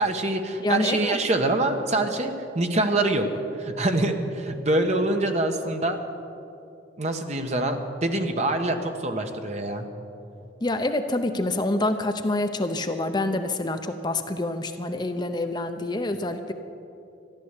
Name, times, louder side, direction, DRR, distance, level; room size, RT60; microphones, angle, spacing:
voice 1, 0.0-3.3 3.6-6.0 7.0-9.9, right 2 dB, 40° right, 5 dB, 1.1 m, -25 dB
voice 2, 0.6-1.2 10.6-16.5, left 2 dB, 25° left, 7 dB, 0.6 m, -27 dB
14.0 x 11.0 x 8.1 m, 2.7 s
head